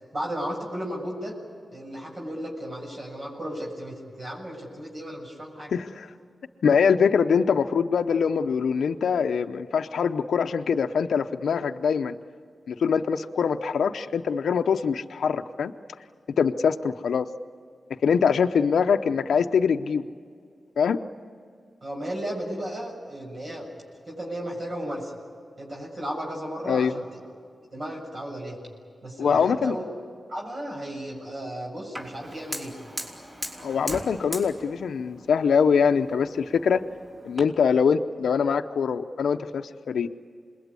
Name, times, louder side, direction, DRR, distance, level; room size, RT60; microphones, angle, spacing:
voice 1, 0.1-1.4 1.7-5.7 21.8-23.7 24.1-25.1 25.6-27.0 27.7-28.6 29.0-29.8 30.3-32.8, equal, 50° right, -2 dB, 7.1 m, -34 dB
voice 2, 5.7-6.1 6.6-12.2 12.7-15.7 16.4-17.3 18.0-20.0 20.8-21.0 26.7-26.9 29.2-29.7 33.6-36.8 37.2-40.1, left 6 dB, 85° left, 7 dB, 0.7 m, -23 dB
Fire, 31.9-37.4, equal, 30° right, 5.1 m, -39 dB
27.0 x 21.0 x 9.8 m, 2.2 s
cardioid pair, 55°, 0 cm